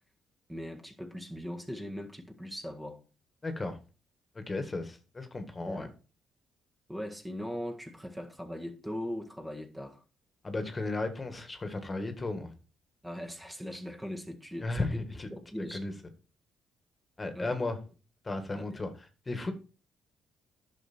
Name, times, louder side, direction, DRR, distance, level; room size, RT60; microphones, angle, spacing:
voice 1, 0.5-3.0 5.7-5.9 6.9-10.0 13.0-15.0 15.3-15.8 17.3-17.6 18.5-18.8, equal, 10° right, 1.6 m, -40 dB
voice 2, 3.4-3.8 4.4-5.9 10.4-12.5 14.6-15.3 15.7-15.9 17.2-17.8 18.3-18.9 19.3-19.5, left 2 dB, 25° left, 1.8 m, -34 dB
10.5 x 6.4 x 4.4 m
cardioid pair, 90°, 0 cm